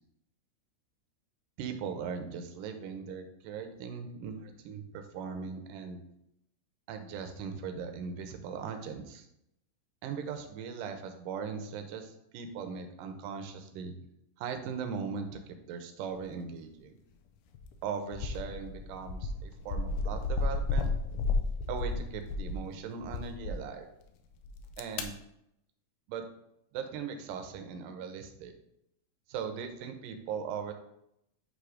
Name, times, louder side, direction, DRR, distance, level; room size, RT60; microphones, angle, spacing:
voice 1, 1.6-6.0 6.9-9.2 10.0-13.9 14.4-16.9 17.8-20.9 21.7-23.9 24.8-25.2 26.1-26.3 26.7-28.5 29.3-30.7, right 6 dB, 80° right, 6 dB, 2.1 m, -39 dB
sound 1, 17.5-17.8 18.1-22.7 23.0-23.6 24.4-25.0, left 3 dB, 80° left, 1.8 m, -32 dB
7.8 x 2.7 x 4.9 m, 0.80 s
omnidirectional pair, 3.9 m